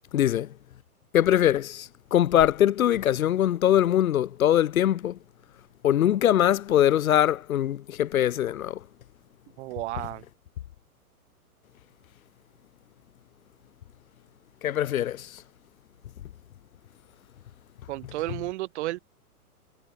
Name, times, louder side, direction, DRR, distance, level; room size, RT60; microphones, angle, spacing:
voice 1, 0.1-0.5 1.1-5.2 5.8-8.8 14.6-15.3, left 11 dB, 60° left, 4.0 m, -22 dB
voice 2, 9.6-10.2 17.9-19.0, right 18 dB, 45° right, 4.7 m, -32 dB
hypercardioid pair, 135°, 46 cm